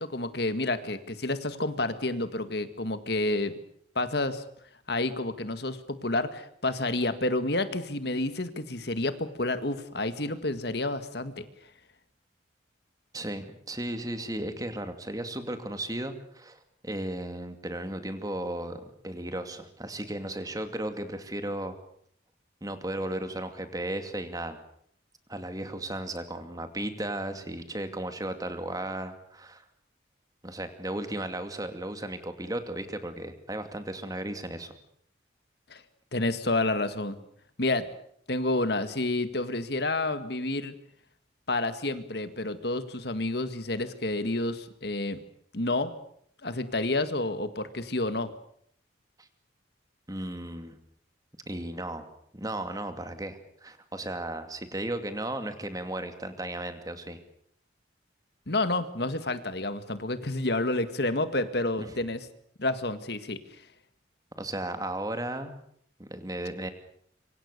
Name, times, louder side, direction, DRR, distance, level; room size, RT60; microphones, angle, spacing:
voice 1, 0.0-3.5 4.0-4.4 4.9-11.5 35.7-35.8 36.1-37.2 37.6-37.8 38.3-40.7 41.5-45.2 45.5-45.9 46.4-48.3 58.5-62.3 62.6-63.4, left 2 dB, 55° left, 11 dB, 1.9 m, -29 dB
voice 2, 13.1-21.8 22.6-24.6 25.3-29.6 30.4-34.7 49.2-49.3 50.1-50.8 51.5-52.1 52.3-57.2 61.8-61.9 64.4-65.5 66.0-66.7, right 1 dB, 20° right, 8 dB, 2.5 m, -35 dB
26.0 x 25.0 x 6.8 m, 0.66 s
head